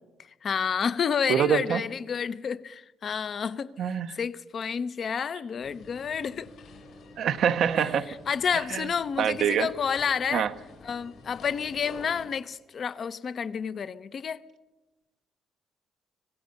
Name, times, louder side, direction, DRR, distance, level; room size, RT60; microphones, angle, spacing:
voice 1, 0.4-6.5 7.7-10.5 10.8-14.4, left 6 dB, 50° left, 0.8 m, -30 dB
voice 2, 1.3-1.8 3.8-4.2 7.2-8.1 8.7-8.8 9.2-9.7 10.3-10.5, right 8 dB, 70° right, 0.8 m, -25 dB
sound 1, 5.6-12.3, left 3 dB, 75° left, 4.8 m, -48 dB
25.5 x 16.5 x 6.6 m
cardioid pair, 90°, 0 cm